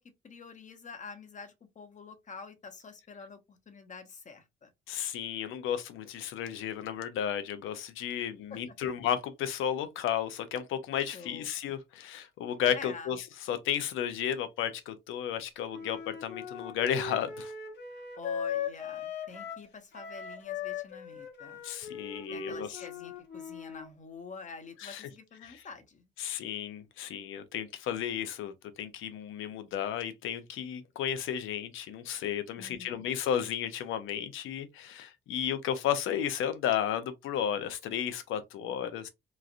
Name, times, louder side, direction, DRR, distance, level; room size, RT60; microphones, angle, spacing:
voice 1, 0.2-4.7 8.2-8.8 11.1-11.6 12.7-13.1 17.9-21.6 22.3-26.1 32.6-33.1, left 5 dB, 40° left, 0.9 m, -47 dB
voice 2, 4.9-17.5 21.6-22.8 24.8-25.1 25.4-25.7 26.2-39.1, left 9 dB, 85° left, 0.6 m, -33 dB
Wind instrument woodwind instrument, 15.7-19.7 19.9-23.9, left 6 dB, 65° left, 1.1 m, -39 dB
3.1 x 2.4 x 2.5 m
cardioid pair, 90°, 20 cm